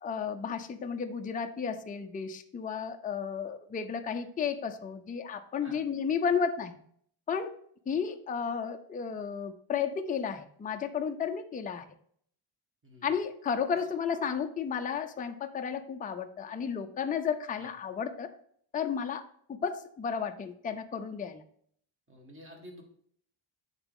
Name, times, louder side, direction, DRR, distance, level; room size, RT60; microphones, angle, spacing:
voice 1, 0.0-6.8 7.3-7.5 7.9-11.8 13.0-18.3 18.7-19.2 19.5-21.4, left 6 dB, 20° left, 6 dB, 0.4 m, -33 dB
voice 2, 12.8-13.1 17.6-17.7 22.1-22.8, equal, 25° right, 0 dB, 1.9 m, -50 dB
9.4 x 4.0 x 3.7 m, 0.63 s
cardioid pair, 140°, 49 cm